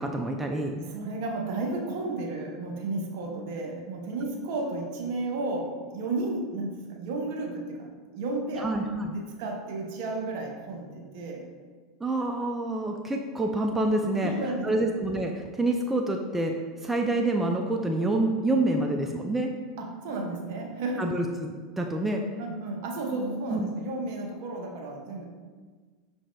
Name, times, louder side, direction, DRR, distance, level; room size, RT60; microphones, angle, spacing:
voice 1, 0.0-0.8 8.6-9.1 12.0-14.3 14.6-19.5 21.0-22.2 23.5-23.7, right 2 dB, 10° right, 2 dB, 0.3 m, -27 dB
voice 2, 0.7-7.9 8.1-8.7 9.1-11.5 14.2-14.9 19.8-21.1 22.4-25.3, right 2 dB, 60° right, 1 dB, 0.7 m, -33 dB
5.9 x 2.6 x 2.2 m, 1.5 s
hypercardioid pair, 85°, 2 cm